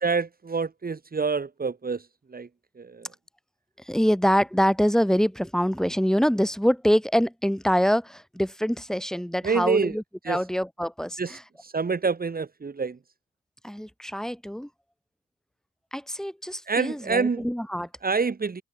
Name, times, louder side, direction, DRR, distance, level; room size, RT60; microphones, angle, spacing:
voice 1, 0.0-2.1 2.3-2.5 2.8-3.1 9.4-10.0 10.2-10.4 11.2-13.0 16.7-17.4 18.0-18.6, right 4 dB, 30° right, 3.2 m, -27 dB
voice 2, 3.9-11.4 13.6-14.7 15.9-17.9, equal, ahead, 6.8 m, -25 dB
cardioid pair, 90°, 30 cm